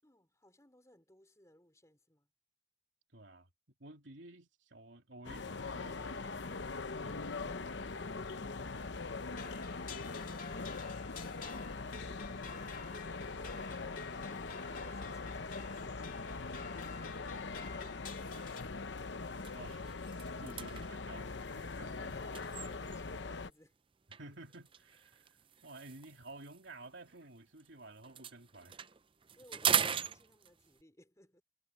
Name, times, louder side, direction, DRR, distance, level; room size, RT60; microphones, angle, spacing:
voice 1, 0.0-2.3 21.7-23.8 29.4-31.4, left 1 dB, 15° left, 4.2 m, -63 dB
voice 2, 3.1-3.5 3.8-6.5 7.0-8.2 19.5-20.0 20.4-22.2 24.1-25.4 25.6-28.9, right 2 dB, 70° right, 3.0 m, -53 dB
sound 1, 5.2-23.5, left 3 dB, 65° left, 0.9 m, -42 dB
sound 2, 9.3-18.6, left 5 dB, 45° left, 2.6 m, -50 dB
sound 3, 18.1-18.4 18.8-19.0 19.3-23.2 24.1-27.7 28.0-30.8, right 8 dB, 25° right, 0.5 m, -39 dB
head